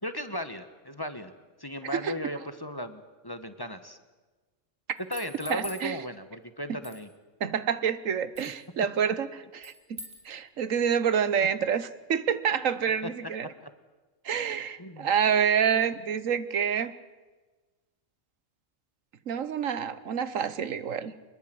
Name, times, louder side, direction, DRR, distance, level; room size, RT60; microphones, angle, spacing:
voice 1, 0.0-1.3 1.6-4.0 5.1-7.1 13.4-13.7 14.8-15.1, equal, 20° left, 10 dB, 1.3 m, -36 dB
sound 1, 5.0-5.9 6.8-7.0 8.4-8.6 9.6-10.2, equal, 45° right, 3.6 m, -42 dB
voice 2, 5.5-6.0 7.4-9.3 9.6-9.7 10.2-13.5 14.2-16.9 19.3-21.1, right 7 dB, 80° right, 14 dB, 1.4 m, -27 dB
24.5 x 21.5 x 7.8 m, 1.3 s
omnidirectional pair, 1.3 m